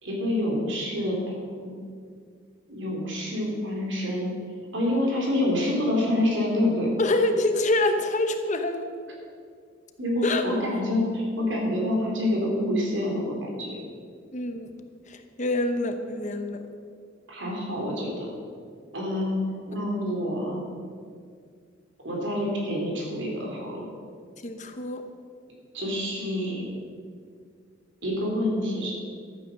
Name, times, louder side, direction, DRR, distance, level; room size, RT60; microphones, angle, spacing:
voice 1, 0.0-1.7 2.7-4.3 4.7-6.9 10.0-13.8 17.3-18.3 18.9-19.4 19.7-20.6 22.0-23.9 25.7-26.7 28.0-28.9, left 1 dB, 70° right, -2 dB, 3.8 m, -27 dB
voice 2, 7.0-8.9 10.2-10.5 14.3-14.7 15.1-16.7 19.8-19.9 24.4-25.0, left 2 dB, 40° left, 7 dB, 1.0 m, -26 dB
13.0 x 9.3 x 6.6 m, 2.1 s
head